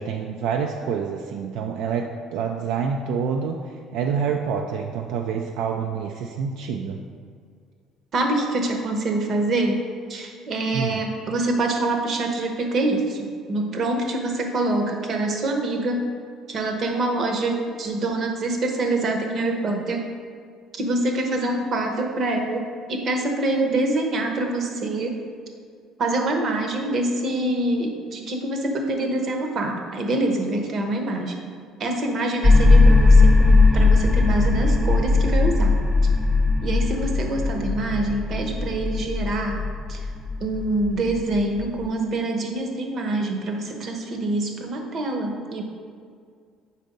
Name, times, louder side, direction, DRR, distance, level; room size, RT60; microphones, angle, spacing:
voice 1, 0.0-7.0 10.7-11.0, right 6 dB, 75° right, 3 dB, 0.3 m, -27 dB
voice 2, 8.1-9.8 10.1-16.1 16.5-20.0 20.7-25.2 26.0-31.3 31.8-35.8 36.6-39.6 39.9-40.0 40.4-45.6, right 2 dB, 45° right, 3 dB, 0.8 m, -25 dB
sound 1, 32.4-41.8, left 3 dB, ahead, 0.5 m, -18 dB
4.4 x 4.1 x 5.1 m, 2.1 s
cardioid pair, 110°, 0 cm